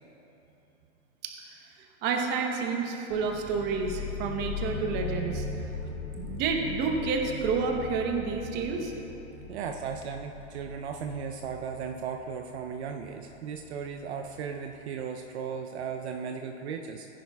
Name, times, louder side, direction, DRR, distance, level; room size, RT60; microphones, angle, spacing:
voice 1, 1.2-1.6 2.0-5.5 6.2-8.9, right 4 dB, 25° right, 3 dB, 0.9 m, -29 dB
sound 1, 3.1-14.5, left 3 dB, 70° left, 1.8 m, -39 dB
voice 2, 9.5-17.1, right 6 dB, 60° right, 4 dB, 0.6 m, -36 dB
15.5 x 10.0 x 2.3 m, 3.0 s
hypercardioid pair, 145°, 38 cm